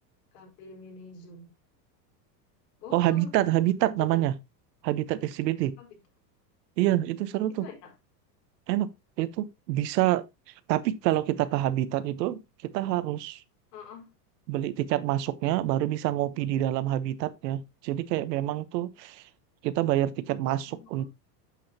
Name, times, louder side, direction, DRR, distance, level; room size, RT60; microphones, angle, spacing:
voice 1, 0.3-1.5 2.8-3.9 5.8-6.0 7.5-7.9 13.7-14.1 20.7-21.1, left 5 dB, 75° left, 4.4 m, -47 dB
voice 2, 2.9-4.3 4.8-5.8 6.8-7.6 8.7-8.9 9.2-10.2 10.7-12.4 12.7-13.4 14.5-19.2 19.6-21.1, right 14 dB, 80° right, 1.1 m, -27 dB
8.4 x 8.0 x 2.8 m
supercardioid pair, 130°, 48 cm